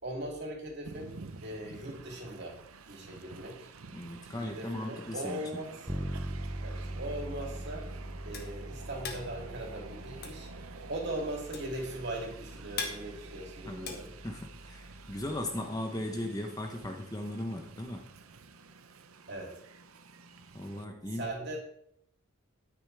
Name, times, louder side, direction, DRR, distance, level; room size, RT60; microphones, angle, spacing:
voice 1, 0.0-1.1 1.4-2.6 2.9-3.7 4.2-6.1 6.6-10.5 10.9-14.2 19.3-19.6 21.0-21.6, right 1 dB, 50° right, -1 dB, 3.2 m, -40 dB
Train, 0.9-20.9, right 4 dB, 90° right, 0.8 m, -50 dB
voice 2, 3.9-5.6 13.7-14.0 14.2-18.1 20.5-21.3, left 1 dB, 15° left, 4 dB, 0.9 m, -37 dB
Bass guitar, 5.9-15.6, right 1 dB, 5° right, 0.6 m, -42 dB
sound 1, 8.3-14.9, left 5 dB, 45° left, 1.6 m, -42 dB
12.0 x 9.7 x 3.5 m, 0.72 s
head